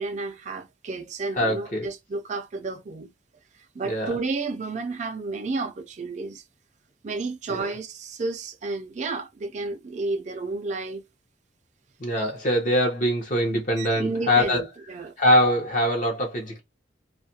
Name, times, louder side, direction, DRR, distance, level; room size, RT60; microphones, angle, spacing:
voice 1, 0.0-3.1 3.8-6.4 7.0-11.0 12.2-12.3 13.8-15.1, right 3 dB, 40° right, 0.4 m, -31 dB
voice 2, 1.4-1.9 3.8-4.2 7.5-7.7 12.0-14.6 15.2-16.6, left 1 dB, 45° left, 0.8 m, -23 dB
2.4 x 2.2 x 2.7 m
head